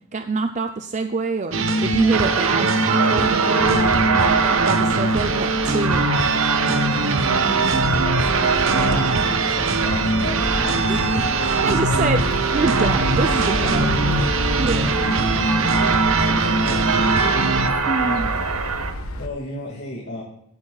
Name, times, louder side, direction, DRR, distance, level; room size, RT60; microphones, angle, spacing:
voice 1, 0.1-6.1 7.0-7.7 10.9-13.9 14.6-15.1 17.9-18.4, right 4 dB, 35° right, 7 dB, 0.5 m, -26 dB
sound 1, 1.5-17.7, right 2 dB, 65° right, 1.0 m, -22 dB
sound 2, 2.1-18.9, right 5 dB, 90° right, 1.2 m, -23 dB
sound 3, 3.6-19.3, left 1 dB, 85° left, 1.3 m, -32 dB
voice 2, 7.3-11.0 11.7-12.1 13.2-14.3 14.9-15.1 16.2-16.8 18.0-18.4 19.2-20.2, left 1 dB, 50° left, -3 dB, 2.2 m, -34 dB
17.0 x 8.7 x 2.4 m, 0.72 s
head